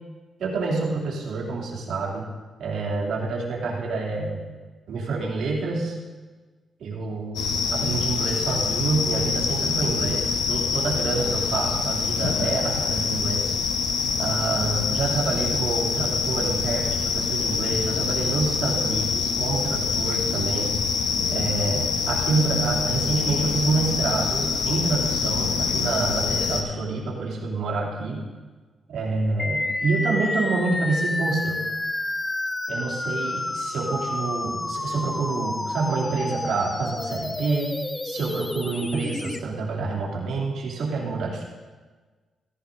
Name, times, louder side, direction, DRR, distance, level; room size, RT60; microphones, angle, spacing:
voice 1, 0.4-2.2 2.6-4.4 4.9-6.0 6.8-13.5 14.2-20.7 21.3-28.2 28.9-31.6 32.7-37.7 38.0-41.4, right 4 dB, 80° right, -3 dB, 2.8 m, -27 dB
sound 1, 7.4-26.6, left 5 dB, 85° left, 1.1 m, -25 dB
sound 2, 29.4-39.4, left 2 dB, 25° left, 0.6 m, -29 dB
15.5 x 14.0 x 2.7 m, 1.4 s
supercardioid pair, 60°, 0 cm